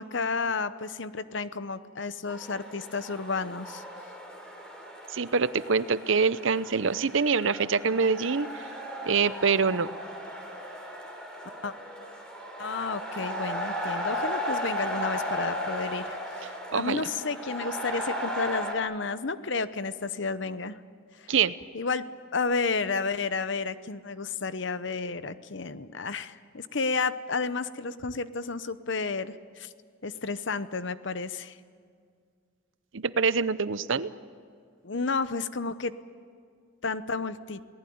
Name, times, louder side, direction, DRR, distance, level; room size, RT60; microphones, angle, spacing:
voice 1, 0.0-3.8 11.6-11.7 12.6-16.2 16.7-20.8 21.2-21.3 21.7-22.1 22.3-29.7 30.0-31.5 34.8-35.9 36.8-37.6, left 4 dB, 60° left, 13 dB, 0.9 m, -31 dB
sound 1, 2.3-18.7, equal, 5° left, 3.6 m, -36 dB
voice 2, 5.1-8.5 9.1-9.9 16.7-17.1 21.3-21.5 32.9-34.1, right 5 dB, 65° right, 15 dB, 0.7 m, -25 dB
28.0 x 18.5 x 9.5 m, 2.1 s
head